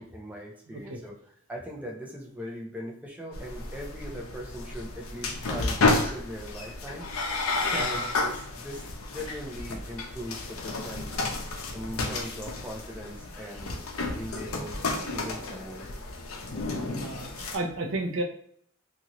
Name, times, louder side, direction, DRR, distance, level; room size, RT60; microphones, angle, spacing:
voice 1, 0.0-7.1 7.7-8.8 9.1-11.4 11.7-15.8, equal, 5° right, -2 dB, 0.6 m, -40 dB
voice 2, 0.7-1.0 7.6-7.8 17.0-18.2, right 2 dB, 60° right, 2 dB, 0.5 m, -33 dB
sound 1, 3.3-17.6, left 3 dB, 80° left, 0.6 m, -31 dB
2.7 x 2.5 x 2.9 m, 0.65 s
head